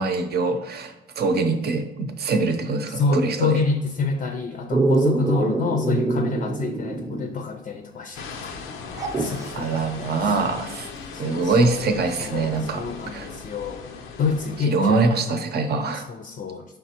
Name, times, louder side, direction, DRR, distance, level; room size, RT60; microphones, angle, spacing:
voice 1, 0.0-3.6 9.5-10.9 11.2-13.3 14.7-16.0, right 3 dB, 55° right, 6 dB, 0.7 m, -24 dB
voice 2, 2.9-8.6 9.2-10.6 11.1-11.9 12.2-13.8 14.2-15.1 16.1-16.7, left 4 dB, 45° left, 5 dB, 0.5 m, -27 dB
Dog, 4.7-7.4 7.7-7.8 8.9-9.5 11.6-11.7, right 3 dB, 15° right, 0.7 m, -24 dB
sound 1, 8.1-14.6, left 5 dB, 90° left, 0.6 m, -38 dB
5.3 x 3.4 x 2.9 m, 1.0 s
cardioid pair, 90°, 20 cm